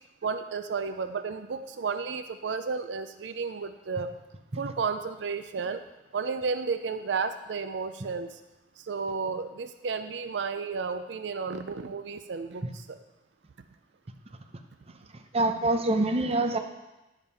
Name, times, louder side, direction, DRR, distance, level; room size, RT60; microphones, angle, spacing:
voice 1, 0.2-4.1 4.6-5.8 6.1-8.4 8.8-13.0, right 5 dB, 85° right, 10 dB, 0.5 m, -32 dB
voice 2, 15.3-16.6, right 2 dB, 35° right, 5 dB, 0.7 m, -25 dB
10.5 x 5.1 x 5.4 m, 1.0 s
head